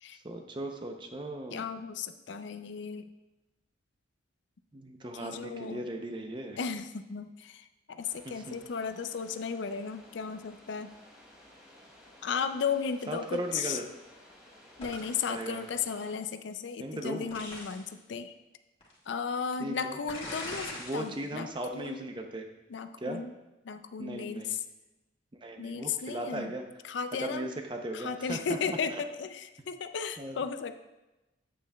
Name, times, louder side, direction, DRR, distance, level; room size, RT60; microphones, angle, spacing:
voice 1, 0.2-1.7 4.7-6.6 8.2-8.6 13.1-13.9 15.3-15.7 16.8-17.3 19.6-20.0 20.8-22.5 23.0-23.2 24.0-24.5 25.4-26.6 27.2-29.0 30.2-30.4, right 1 dB, 25° right, 4 dB, 0.6 m, -37 dB
voice 2, 1.5-3.1 5.1-5.8 6.6-10.9 12.2-13.8 14.8-18.3 19.1-21.5 21.7-22.1 22.7-23.3 23.7-24.6 25.6-26.5 26.8-27.5 27.9-30.8, left 6 dB, 70° left, 10 dB, 0.4 m, -35 dB
sound 1, 8.0-16.1, left 1 dB, 5° right, 1.5 m, -56 dB
sound 2, 14.8-15.3 17.3-17.9 18.8-18.9 20.1-21.1 21.5-21.9, left 2 dB, 30° left, 1.8 m, -41 dB
8.7 x 8.1 x 2.3 m, 1.0 s
head